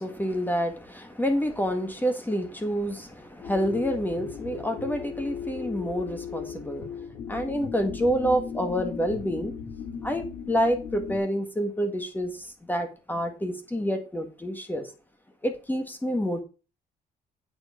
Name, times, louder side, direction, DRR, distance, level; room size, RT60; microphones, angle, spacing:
voice 1, 0.0-6.9 7.3-9.5 10.0-14.9 15.4-16.4, equal, 10° left, 1.8 m, -28 dB
sound 1, 3.4-11.2, left 6 dB, 85° left, 2.5 m, -37 dB
8.8 x 4.9 x 5.8 m
cardioid pair, 85°, 17 cm